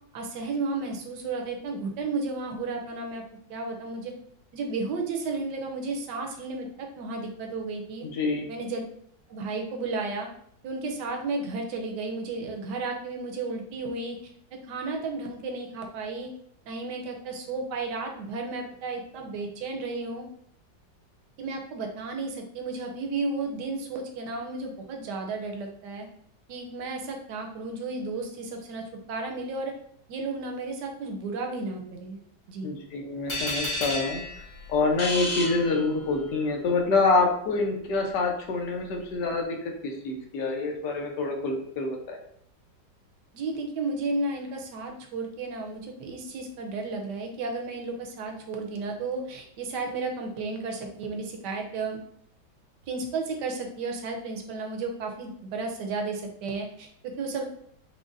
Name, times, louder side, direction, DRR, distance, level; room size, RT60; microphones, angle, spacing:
voice 1, 0.1-3.2 3.5-4.1 4.5-8.1 8.5-8.8 9.3-10.3 10.6-14.2 14.5-16.3 16.7-20.3 21.4-26.1 26.5-29.7 30.1-32.2 32.5-32.7 43.3-52.0 52.9-57.4, right 3 dB, 75° right, 2 dB, 1.2 m, -33 dB
voice 2, 8.0-8.5 32.6-34.2 34.7-42.2, left 3 dB, 75° left, 2 dB, 1.3 m, -26 dB
sound 1, 33.3-36.3, left 2 dB, 50° left, 1.7 m, -32 dB
4.9 x 2.1 x 2.5 m, 0.66 s
omnidirectional pair, 1.9 m